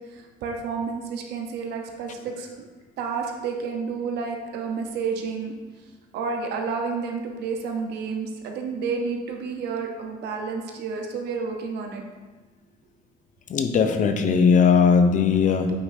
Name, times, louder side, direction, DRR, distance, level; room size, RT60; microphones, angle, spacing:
voice 1, 0.1-2.7 3.0-5.5 6.1-12.0, right 5 dB, 80° right, 2 dB, 0.9 m, -30 dB
voice 2, 13.5-15.7, left 5 dB, 50° left, 7 dB, 0.6 m, -19 dB
8.5 x 5.1 x 2.7 m, 1.3 s
cardioid pair, 110°, 17 cm